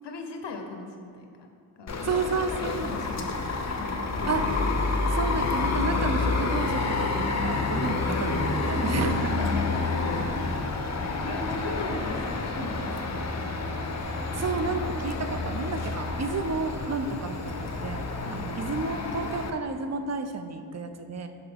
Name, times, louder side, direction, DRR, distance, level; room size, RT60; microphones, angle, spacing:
voice 1, 0.0-1.5 1.8-4.4 9.4-10.0 10.4-10.9 11.2-13.3 18.2-18.5, left 3 dB, 85° left, 4 dB, 0.6 m, -39 dB
sound 1, 1.9-19.5, left 3 dB, 40° left, 0.5 m, -29 dB
voice 2, 2.0-3.0 4.3-4.4 5.1-9.4 14.3-21.3, right 4 dB, 40° right, 7 dB, 0.4 m, -31 dB
5.9 x 5.3 x 3.4 m, 2.4 s
wide cardioid pair, 80°, 41 cm